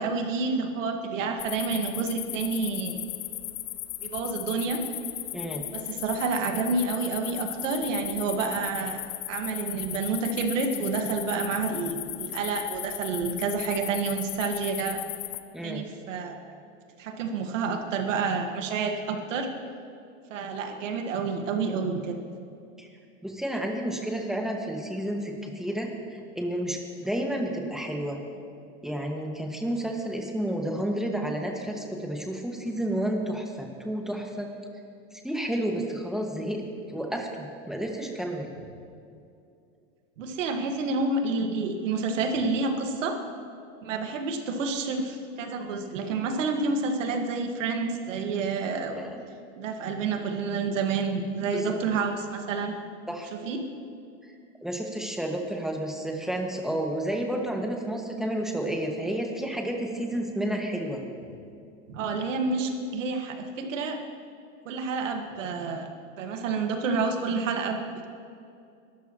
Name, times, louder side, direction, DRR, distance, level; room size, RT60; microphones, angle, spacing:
voice 1, 0.0-3.0 4.0-4.8 5.7-9.0 9.3-15.0 15.6-16.4 17.0-19.5 20.3-22.2 40.2-43.2 43.8-49.0 49.6-52.7 53.3-53.6 61.9-64.0 64.7-65.9 66.2-67.8, right 4 dB, 85° right, 4 dB, 1.8 m, -29 dB
sound 1, 1.4-15.4, left 16 dB, 60° left, 0.8 m, -36 dB
voice 2, 5.3-5.6 15.5-15.8 22.8-22.9 23.2-28.2 28.8-34.5 35.1-36.6 36.9-38.5 49.0-49.2 51.5-51.7 53.1-53.3 54.2-54.3 54.6-61.0, right 1 dB, ahead, 0 dB, 1.8 m, -31 dB
22.0 x 13.0 x 3.1 m, 2.5 s
supercardioid pair, 135°, 37 cm